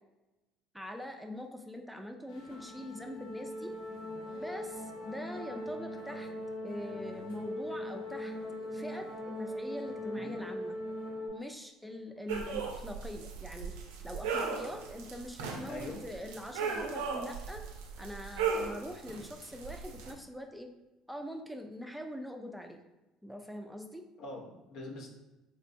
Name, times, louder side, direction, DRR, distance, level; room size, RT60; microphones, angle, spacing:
voice 1, 0.7-3.8 4.4-6.3 6.6-10.8 11.3-13.7 14.0-17.7 18.0-20.7 21.1-22.8 23.2-24.1, equal, ahead, 4 dB, 0.4 m, -43 dB
sound 1, 2.3-11.3, left 1 dB, 90° left, 1.1 m, -40 dB
sound 2, 12.3-20.1, right 5 dB, 80° right, 0.4 m, -37 dB
voice 2, 15.7-16.0 24.2-25.1, left 2 dB, 65° left, 0 dB, 0.6 m, -43 dB
3.3 x 3.0 x 2.5 m, 1.0 s
hypercardioid pair, 70°, 0 cm